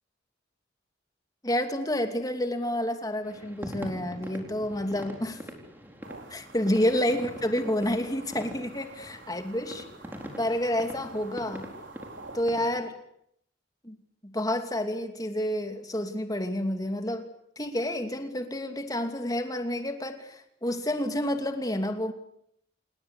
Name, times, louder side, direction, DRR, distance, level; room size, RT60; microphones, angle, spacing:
voice 1, 1.4-5.4 6.3-9.8 10.4-11.7 12.3-12.9 13.8-14.0 14.2-17.3 17.6-22.1, left 1 dB, 20° left, 6 dB, 2.8 m, -29 dB
sound 1, 3.2-12.8, equal, 10° right, 4.2 m, -43 dB
sound 2, 6.0-12.4, right 3 dB, 85° right, 4.2 m, -48 dB
28.0 x 20.5 x 8.5 m, 0.74 s
head